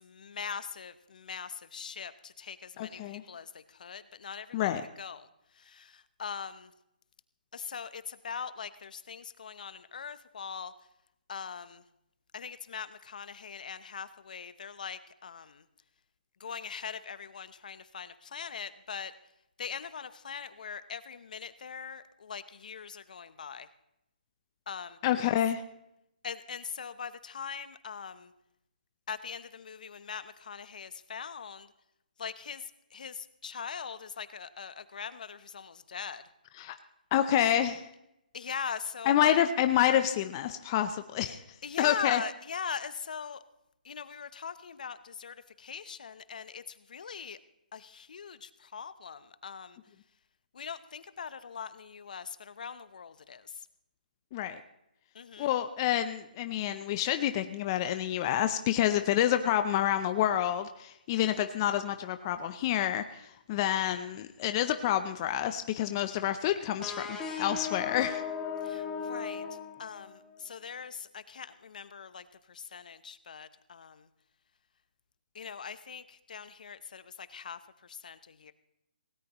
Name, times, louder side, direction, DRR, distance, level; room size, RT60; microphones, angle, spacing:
voice 1, 0.0-5.3 5.5-6.7 7.5-10.7 11.3-11.8 12.3-15.6 16.4-19.1 19.6-23.7 24.7-25.4 26.2-28.3 29.1-31.7 32.2-36.2 38.3-39.4 41.6-43.4 43.8-47.4 47.7-49.8 50.5-53.7 55.1-55.5 68.6-74.1 75.3-78.5, left 6 dB, 60° left, 14 dB, 0.9 m, -41 dB
voice 2, 2.8-3.2 4.5-4.8 25.0-25.6 36.6-36.8 37.1-37.9 39.1-41.4 41.8-42.2 54.3-54.6 55.4-68.2, left 11 dB, 25° left, 9 dB, 0.6 m, -28 dB
sound 1, 66.8-70.3, left 6 dB, 10° left, 2.0 m, -37 dB
18.5 x 17.5 x 3.1 m, 0.83 s
hypercardioid pair, 155°, 5 cm